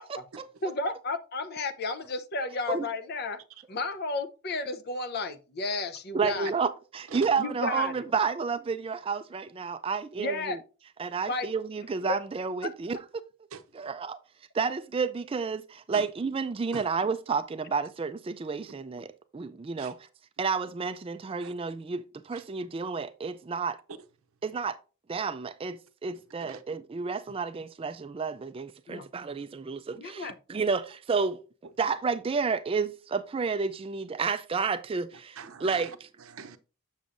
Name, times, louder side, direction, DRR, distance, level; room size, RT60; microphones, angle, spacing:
voice 1, 0.1-0.5 2.7-2.9 6.1-10.6 11.0-13.0 13.7-14.2 14.5-20.1 20.4-23.8 24.4-24.8 25.1-31.4 31.8-36.1, right 5 dB, 25° right, 0.3 m, -31 dB
voice 2, 0.6-3.4 3.7-6.5 7.4-8.0 10.2-10.6 11.3-11.5 11.8-12.2 12.6-12.7 28.9-29.1 29.9-30.4, left 3 dB, 50° left, 0.8 m, -33 dB
voice 3, 35.4-36.6, right 6 dB, 75° right, 0.6 m, -43 dB
7.2 x 6.9 x 2.6 m
head